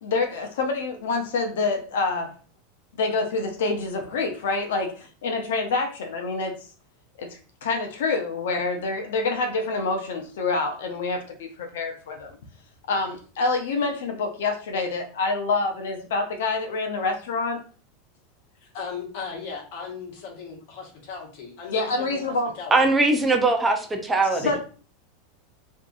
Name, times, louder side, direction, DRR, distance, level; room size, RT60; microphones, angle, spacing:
voice 1, 0.0-2.3 3.0-6.5 7.2-7.3 7.6-12.3 12.9-17.6 21.7-22.5 24.3-24.6, left 3 dB, 85° left, 4 dB, 0.6 m, -27 dB
voice 2, 18.6-22.7, left 5 dB, 60° left, 0 dB, 1.1 m, -37 dB
voice 3, 22.7-24.5, right 3 dB, 10° right, 3 dB, 0.4 m, -21 dB
2.7 x 2.5 x 2.3 m, 0.38 s
supercardioid pair, 140°, 0 cm